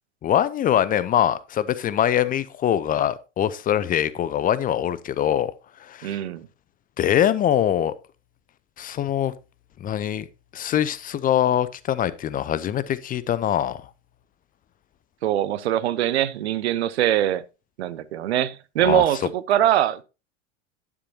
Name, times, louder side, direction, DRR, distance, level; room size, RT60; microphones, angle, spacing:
voice 1, 0.2-5.5 5.8-6.1 7.0-7.9 8.8-9.3 9.8-10.2 10.5-13.8 18.8-19.0, left 10 dB, 25° left, 0.6 m, -23 dB
voice 2, 6.0-6.5 15.2-17.4 17.8-20.0, right 12 dB, 65° right, 0.9 m, -22 dB
11.0 x 9.7 x 2.7 m
figure-of-eight pair, 85°, 36 cm